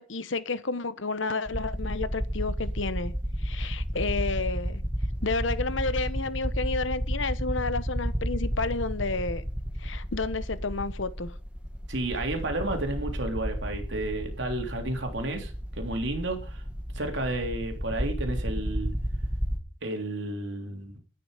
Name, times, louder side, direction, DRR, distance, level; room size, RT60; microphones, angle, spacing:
voice 1, 0.0-3.1 3.4-4.8 5.2-9.4 9.8-11.3, left 3 dB, 75° left, 1.1 m, -31 dB
sound 1, 1.5-19.6, equal, 5° right, 2.0 m, -32 dB
voice 2, 11.9-16.6 16.9-18.9 19.8-21.0, right 2 dB, 70° right, 3.3 m, -32 dB
11.5 x 10.0 x 5.0 m
head